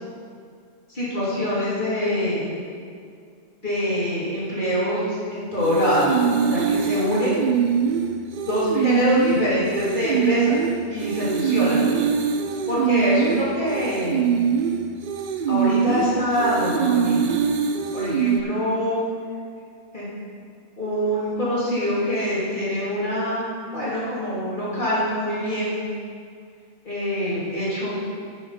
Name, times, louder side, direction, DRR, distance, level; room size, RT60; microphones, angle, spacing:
voice 1, 0.9-2.5 3.6-7.4 8.4-10.6 10.9-11.8 12.7-14.3 15.5-17.2 17.9-19.0 19.9-20.1 20.8-23.4 23.7-25.8 26.8-28.0, equal, 45° left, -9 dB, 3.1 m, -24 dB
sound 1, 5.6-18.4, right 7 dB, 55° right, 0.6 m, -23 dB
10.0 x 6.3 x 5.7 m, 2.2 s
omnidirectional pair, 1.1 m